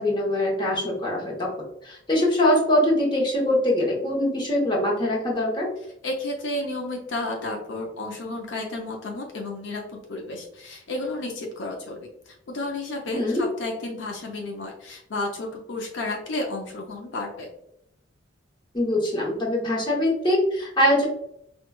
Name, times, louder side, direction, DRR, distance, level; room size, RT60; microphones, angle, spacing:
voice 1, 0.0-1.5 1.8-5.7 13.1-13.4 18.7-21.1, left 1 dB, 25° left, -3 dB, 0.8 m, -23 dB
voice 2, 6.0-17.5, left 2 dB, 65° left, 1 dB, 0.5 m, -32 dB
4.4 x 2.2 x 2.2 m, 0.78 s
head